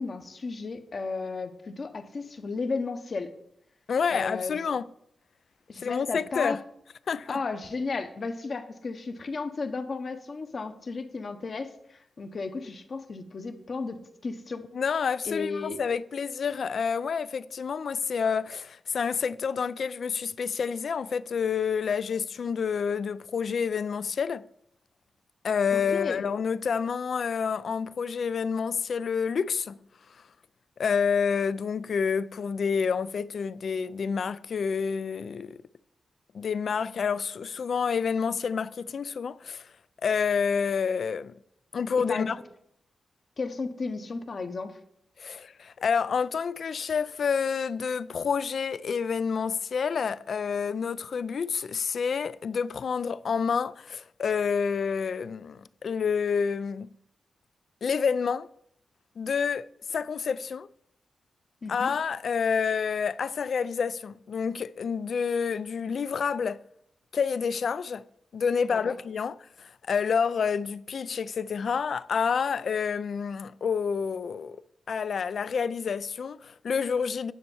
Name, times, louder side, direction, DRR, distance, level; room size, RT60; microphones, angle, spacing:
voice 1, 0.0-3.3 4.1-4.6 5.7-6.6 7.3-14.6 15.2-15.8 25.7-26.2 42.0-42.4 43.4-44.8 61.6-61.9 68.7-69.0, left 4 dB, 45° left, 0.9 m, -34 dB
voice 2, 3.9-4.8 5.8-6.6 7.1-7.4 14.7-24.4 25.4-29.8 30.8-35.6 36.3-39.7 40.0-41.3 41.7-42.4 45.2-56.9 57.8-58.5 59.2-59.6 59.9-60.7 61.7-66.6 67.1-68.0 68.3-74.6 74.9-77.3, left 6 dB, 60° left, 0.3 m, -28 dB
9.5 x 4.4 x 7.0 m
wide cardioid pair, 120°, 0 cm